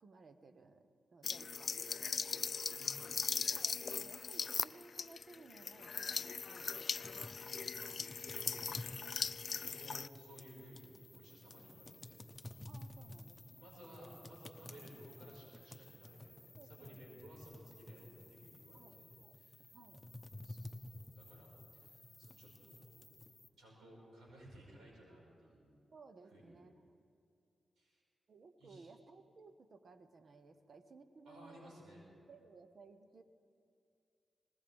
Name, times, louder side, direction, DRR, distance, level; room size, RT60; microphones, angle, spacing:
voice 1, 0.0-2.4 3.5-7.4 12.6-13.7 14.9-15.0 16.5-17.2 17.4-17.5 18.7-19.3 19.7-20.0 25.9-27.0 28.3-31.7 32.3-33.2, right 4 dB, 60° right, 9 dB, 0.9 m, -59 dB
sound 1, 1.2-10.1, left 5 dB, 55° left, 0.3 m, -39 dB
voice 2, 2.8-3.5 7.9-8.8 9.7-12.2 13.3-19.1 19.3-19.7 20.4-22.9 23.6-25.8 26.3-26.6 27.8-28.0 28.6-28.9 31.3-32.0, right 1 dB, 90° right, -4 dB, 5.3 m, -58 dB
sound 2, 7.0-23.5, left 1 dB, 20° left, 0.9 m, -53 dB
20.0 x 19.0 x 3.6 m, 2.4 s
cardioid pair, 65°, 0 cm